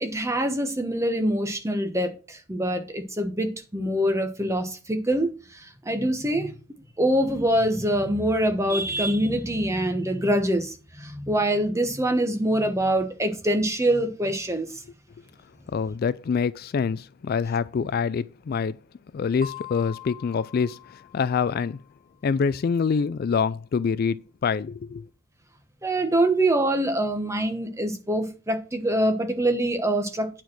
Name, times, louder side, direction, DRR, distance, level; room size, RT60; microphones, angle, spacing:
voice 1, 0.0-5.3 5.8-6.5 7.0-14.7 25.8-30.4, right 1 dB, 15° right, 1.1 m, -24 dB
voice 2, 15.7-18.8 19.1-20.8 21.1-21.8 22.2-25.1, left 6 dB, 50° left, 0.3 m, -25 dB
sound 1, 19.4-21.9, left 9 dB, 45° right, 1.2 m, -43 dB
9.2 x 4.4 x 6.1 m
head